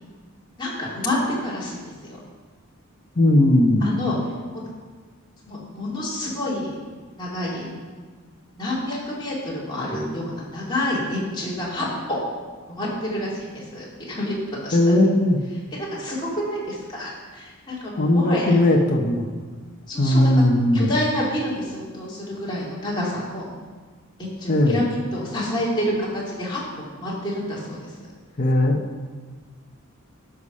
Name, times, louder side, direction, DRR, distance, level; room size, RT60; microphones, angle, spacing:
voice 1, 0.6-2.2 3.8-4.6 5.5-6.7 7.2-7.7 8.5-12.2 12.7-14.9 15.5-18.6 19.9-20.4 20.7-23.5 24.2-28.0, left 1 dB, 20° left, -6 dB, 2.7 m, -28 dB
voice 2, 3.2-3.9 14.7-15.4 18.0-19.3 20.0-20.9 24.5-24.8 28.4-28.8, left 1 dB, 40° left, 1 dB, 0.9 m, -18 dB
12.5 x 4.9 x 5.5 m, 1.5 s
head